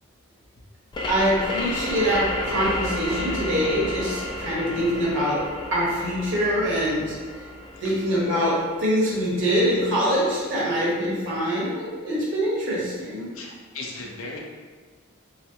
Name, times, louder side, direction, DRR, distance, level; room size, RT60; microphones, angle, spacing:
sound 1, 0.9-10.3, left 1 dB, 20° left, 0.3 m, -33 dB
voice 1, 1.1-5.4 5.7-7.2 7.8-13.3, equal, 60° right, -6 dB, 1.3 m, -24 dB
voice 2, 13.3-14.4, left 3 dB, 70° left, -1 dB, 0.6 m, -36 dB
3.5 x 3.2 x 2.8 m, 1.4 s
head